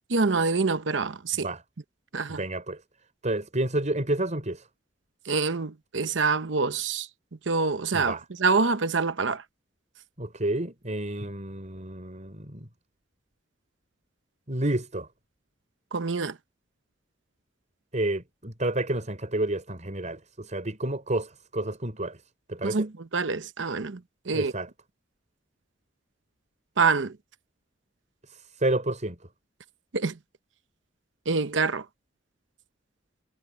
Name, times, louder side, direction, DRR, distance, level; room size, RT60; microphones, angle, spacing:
voice 1, 0.1-1.5 2.1-2.4 5.2-7.1 7.5-9.4 15.9-16.4 22.6-24.5 26.8-27.2 29.9-30.2 31.3-31.9, right 4 dB, 70° right, 0.9 m, -26 dB
voice 2, 2.3-2.8 3.2-4.7 7.9-8.2 10.2-12.7 14.5-15.1 17.9-22.2 22.5-22.9 24.3-24.7 28.3-29.2, right 1 dB, 40° right, 5.8 m, -30 dB
head